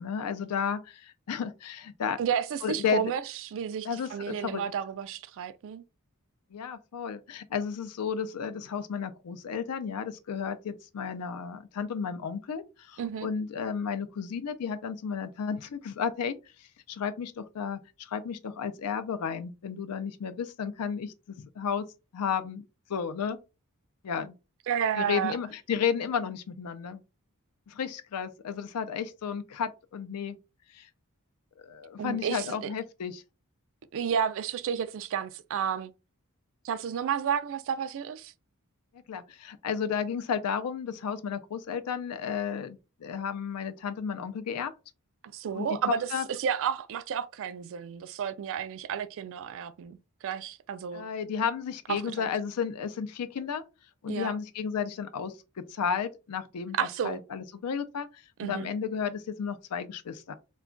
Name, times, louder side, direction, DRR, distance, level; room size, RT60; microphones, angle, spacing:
voice 1, 0.0-2.2 2.6-3.1 3.8-4.6 6.5-21.9 22.1-22.6 22.9-23.4 24.0-24.3 25.0-27.0 27.7-30.4 30.7-30.9 31.6-33.2 39.1-44.7 45.5-45.7 46.1-46.3 50.9-53.6 54.0-55.4 55.7-60.3, left 7 dB, 90° left, 0.4 m, -33 dB
voice 2, 2.2-5.8 13.0-13.3 24.7-25.4 32.0-32.6 33.9-35.9 36.6-38.3 45.3-46.1 46.4-51.0 51.9-52.3 54.1-54.3 56.8-57.2 58.4-58.7, right 8 dB, 60° right, 0.3 m, -31 dB
2.3 x 2.2 x 3.7 m
head